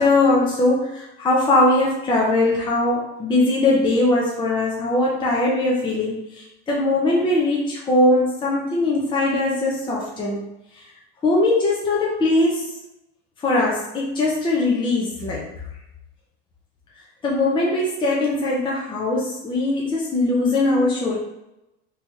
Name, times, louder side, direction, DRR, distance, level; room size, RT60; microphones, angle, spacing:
voice 1, 0.0-10.4 11.2-12.6 13.4-15.5 17.2-21.2, left 2 dB, 15° left, -4 dB, 0.6 m, -20 dB
3.3 x 3.0 x 2.8 m, 0.91 s
supercardioid pair, 125°, 33 cm